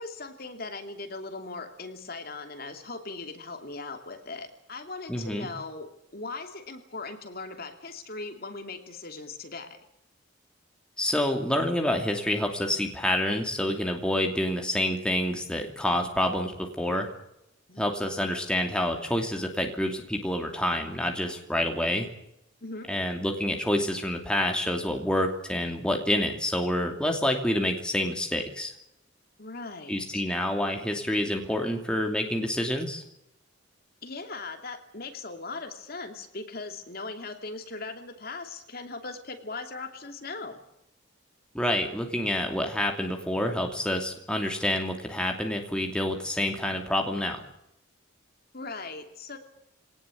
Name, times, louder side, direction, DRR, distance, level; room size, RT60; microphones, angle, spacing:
voice 1, 0.0-9.8 17.7-17.8 22.6-22.9 29.4-30.2 34.0-40.6 48.5-49.4, left 3 dB, 50° left, 5 dB, 2.8 m, -39 dB
voice 2, 5.1-5.5 11.0-17.1 17.8-22.1 22.9-28.7 29.9-33.0 41.5-47.5, left 1 dB, 5° left, 2 dB, 2.7 m, -28 dB
23.0 x 18.5 x 8.5 m, 0.80 s
head